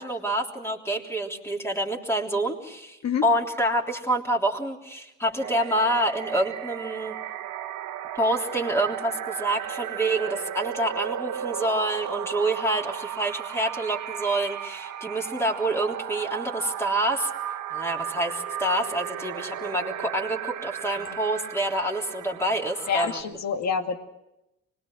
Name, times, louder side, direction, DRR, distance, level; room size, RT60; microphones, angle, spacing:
voice 1, 0.0-7.2 8.2-17.3 17.7-23.2, right 1 dB, 10° left, 1 dB, 3.5 m, -27 dB
sound 1, 5.4-23.2, right 10 dB, 80° right, 1.4 m, -35 dB
voice 2, 22.9-24.0, left 7 dB, 60° left, 6 dB, 2.2 m, -27 dB
25.0 x 21.0 x 7.5 m, 0.90 s
cardioid pair, 90°, 30 cm